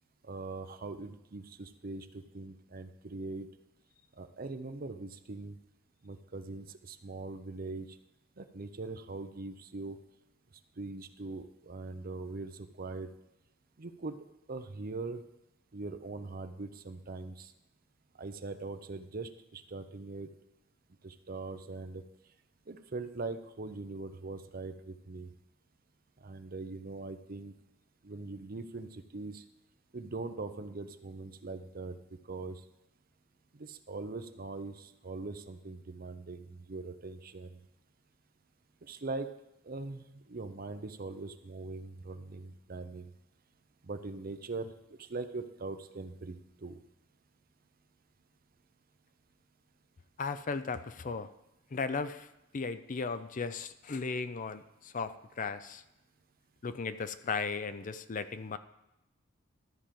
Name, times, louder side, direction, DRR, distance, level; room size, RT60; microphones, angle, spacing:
voice 1, 0.2-3.5 4.2-5.6 6.0-8.0 8.4-10.0 10.8-13.1 13.8-14.2 14.5-15.2 15.7-17.5 18.2-20.3 21.0-22.0 22.7-25.3 26.2-27.5 28.0-29.4 29.9-32.6 33.5-37.6 38.8-39.3 39.6-43.1 43.8-46.8, right 3 dB, 45° right, 9 dB, 0.7 m, -41 dB
voice 2, 50.2-51.3 51.7-52.3 52.5-55.8 56.6-58.6, left 4 dB, 40° left, 12 dB, 0.5 m, -36 dB
12.5 x 5.0 x 7.5 m, 0.91 s
head